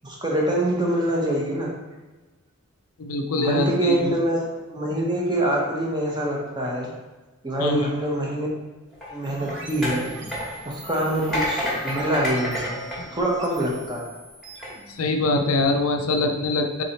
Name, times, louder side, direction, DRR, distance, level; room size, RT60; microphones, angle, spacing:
voice 1, 0.0-1.7 3.4-6.9 7.4-8.5 9.1-10.3 10.7-12.8 13.1-14.0, right 1 dB, 20° right, -2 dB, 0.8 m, -25 dB
voice 2, 3.0-3.9 7.6-7.8 14.9-16.8, left 2 dB, 65° left, 4 dB, 0.5 m, -23 dB
sound 1, 8.9-13.9 14.4-14.7, left 1 dB, ahead, 1.2 m, -30 dB
sound 2, 9.2-15.6, equal, 60° right, 0.8 m, -42 dB
3.8 x 3.1 x 4.1 m, 1.2 s
head